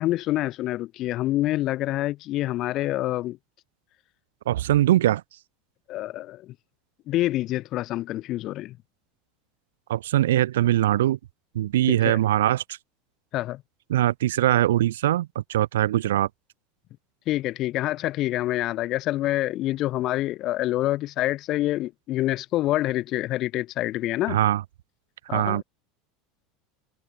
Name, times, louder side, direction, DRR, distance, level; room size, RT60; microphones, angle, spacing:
voice 1, 0.0-3.4 5.9-6.5 7.1-8.8 11.9-12.2 13.3-13.6 17.3-24.4 25.3-25.6, left 16 dB, 45° left, 4.4 m, -27 dB
voice 2, 4.5-5.2 9.9-11.2 11.5-12.6 13.9-16.3 24.3-24.6 25.3-25.6, right 13 dB, 65° right, 0.9 m, -22 dB
figure-of-eight pair, 75°, 0 cm